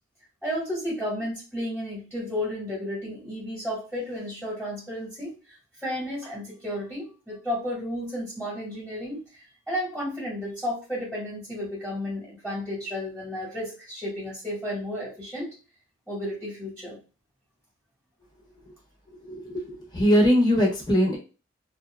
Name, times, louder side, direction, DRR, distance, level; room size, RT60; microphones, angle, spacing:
voice 1, 0.4-15.5 16.1-17.0, left 1 dB, ahead, -4 dB, 1.2 m, -33 dB
voice 2, 19.2-21.2, equal, 20° left, -1 dB, 0.9 m, -22 dB
2.6 x 2.3 x 2.2 m, 0.32 s
head